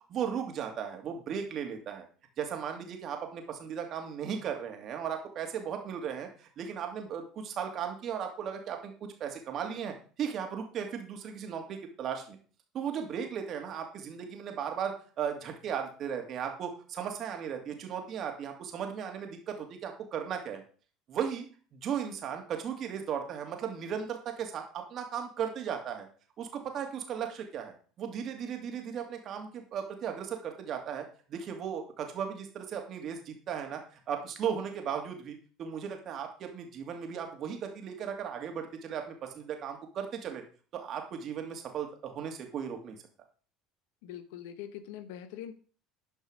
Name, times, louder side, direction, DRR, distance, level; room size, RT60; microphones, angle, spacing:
voice 1, 0.1-2.1 2.4-8.9 9.2-12.4 12.7-20.6 21.1-21.5 21.7-26.1 26.4-40.4 40.7-43.0, right 8 dB, 50° right, 4 dB, 2.6 m, -36 dB
voice 2, 44.0-45.5, left 10 dB, 80° left, 13 dB, 1.0 m, -43 dB
11.5 x 5.4 x 5.2 m, 0.41 s
supercardioid pair, 85°, 0 cm